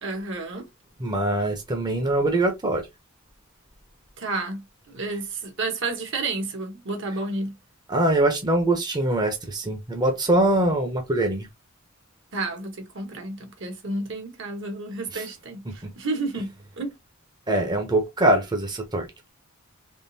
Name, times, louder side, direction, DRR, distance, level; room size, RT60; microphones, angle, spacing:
voice 1, 0.0-0.7 4.2-7.6 12.3-17.0, right 3 dB, 60° right, 1.1 m, -31 dB
voice 2, 1.0-2.9 7.9-11.5 15.1-15.2 15.7-15.9 17.5-19.1, right 1 dB, 20° right, 0.7 m, -23 dB
3.7 x 3.1 x 2.7 m
head